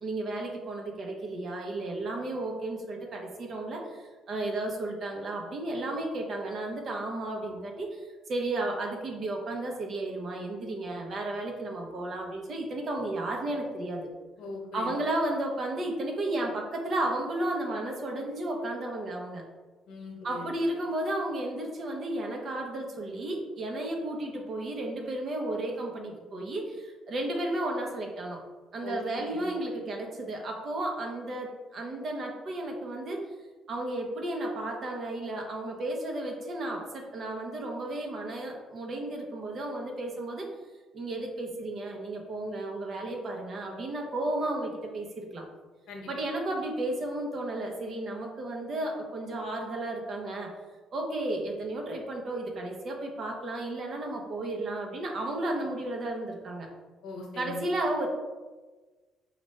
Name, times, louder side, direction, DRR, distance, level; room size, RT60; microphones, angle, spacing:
voice 1, 0.0-14.1 14.7-19.4 20.2-28.4 28.7-33.3 33.7-40.5 40.9-45.4 46.1-50.5 50.9-56.7 57.4-58.1, right 1 dB, 45° right, 1 dB, 0.8 m, -33 dB
voice 2, 14.4-14.9 19.9-20.5 28.8-29.4 45.9-46.1 57.0-57.6, left 3 dB, 75° left, 1 dB, 0.9 m, -40 dB
5.1 x 2.5 x 3.2 m, 1.3 s
cardioid pair, 130°, 0 cm